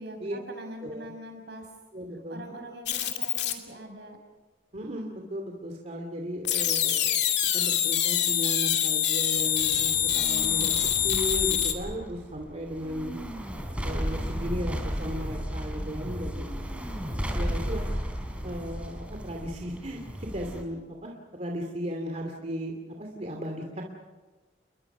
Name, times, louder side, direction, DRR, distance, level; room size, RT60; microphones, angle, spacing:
voice 1, 0.0-1.7 2.3-4.2, right 1 dB, 65° right, 4 dB, 6.6 m, -43 dB
voice 2, 1.9-2.4 4.7-7.3 7.5-13.1 13.8-16.6 17.3-17.9 18.4-23.8, equal, 40° right, 1 dB, 2.7 m, -36 dB
sound 1, 2.9-3.5 6.4-11.7, left 10 dB, 70° left, 2.6 m, -25 dB
sound 2, 9.4-20.6, equal, 5° right, 3.6 m, -34 dB
30.0 x 22.5 x 6.1 m, 1.3 s
head